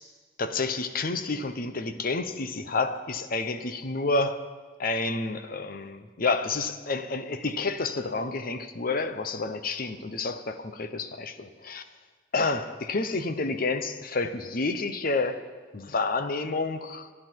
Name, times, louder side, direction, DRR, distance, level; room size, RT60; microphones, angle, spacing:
voice 1, 0.4-4.4 4.8-11.8 12.3-15.4 15.7-17.1, left 3 dB, 50° left, 10 dB, 0.9 m, -29 dB
24.0 x 9.9 x 4.6 m, 1.5 s
head